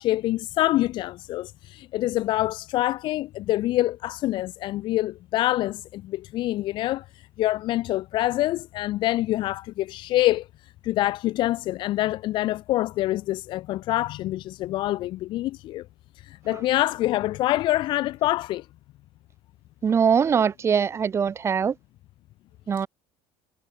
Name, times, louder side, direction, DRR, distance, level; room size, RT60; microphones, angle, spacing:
voice 1, 0.0-10.5 10.8-15.8 16.2-18.7, left 16 dB, 55° left, 0.8 m, -26 dB
voice 2, 19.8-21.7 22.7-22.9, right 7 dB, 30° right, 1.4 m, -22 dB
cardioid pair, 125°, 10 cm